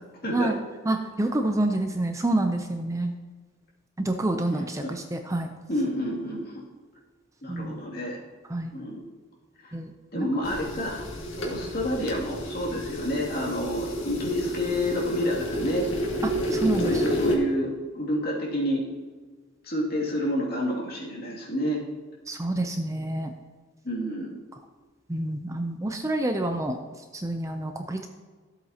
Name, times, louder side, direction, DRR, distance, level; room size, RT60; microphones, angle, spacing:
voice 1, 0.9-3.1 4.0-5.5 7.5-7.8 8.5-8.7 9.7-10.3 16.2-17.0 22.3-23.3 25.1-26.8 27.1-28.1, right 1 dB, 15° right, 5 dB, 0.5 m, -28 dB
voice 2, 5.7-6.7 7.4-8.2 8.7-9.0 9.6-9.7 10.1-11.0 11.4-15.9 16.8-18.8 19.6-21.8 23.8-24.4, equal, 50° left, -3 dB, 2.4 m, -29 dB
sound 1, 10.4-17.4, equal, 80° left, 1.8 m, -30 dB
13.5 x 8.0 x 2.8 m, 1.4 s
head